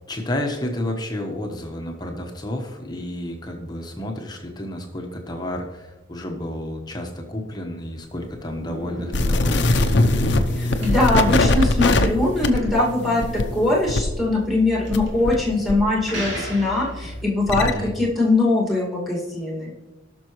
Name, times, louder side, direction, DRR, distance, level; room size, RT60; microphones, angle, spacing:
voice 1, 0.1-10.1 17.6-17.9, left 1 dB, 20° left, 2 dB, 1.1 m, -31 dB
sound 1, 8.0-17.3, equal, 70° right, 2.8 m, -35 dB
sound 2, 9.1-15.4 15.7-17.7, left 2 dB, 60° left, 0.7 m, -22 dB
voice 2, 10.6-17.7 18.0-19.7, left 2 dB, ahead, -3 dB, 2.1 m, -21 dB
18.0 x 6.2 x 3.1 m, 1.1 s
head